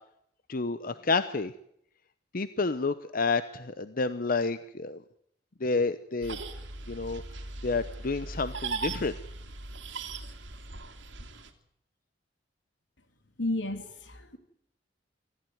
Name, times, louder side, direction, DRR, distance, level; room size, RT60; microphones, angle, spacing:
voice 1, 0.5-1.5 2.3-5.0 5.6-6.4 6.9-7.2 7.6-9.1, left 4 dB, 50° left, 13 dB, 0.8 m, -29 dB
sound 1, 6.2-11.5, right 3 dB, 90° right, 2.6 m, -39 dB
voice 2, 13.4-14.4, left 1 dB, 85° left, 7 dB, 3.2 m, -32 dB
25.5 x 15.0 x 9.4 m, 0.74 s
head